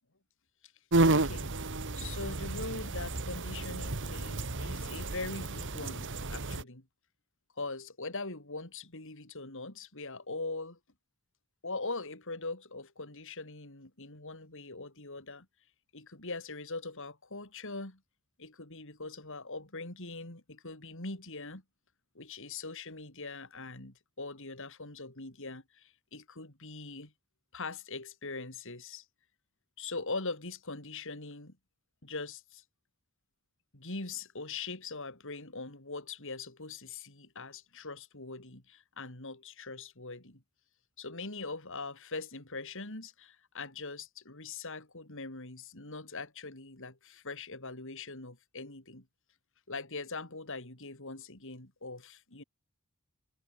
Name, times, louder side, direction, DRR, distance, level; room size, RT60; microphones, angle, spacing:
sound 1, 0.9-6.6, right 2 dB, 55° right, 1.9 m, -31 dB
voice 1, 1.1-1.5 2.0-6.9 7.6-10.8 11.6-15.5 15.9-18.0 18.4-21.6 22.1-27.1 27.5-29.0 29.8-31.6 32.0-32.6 33.7-40.4 41.0-49.1 49.7-52.4, left 3 dB, 60° left, 4.4 m, -42 dB
head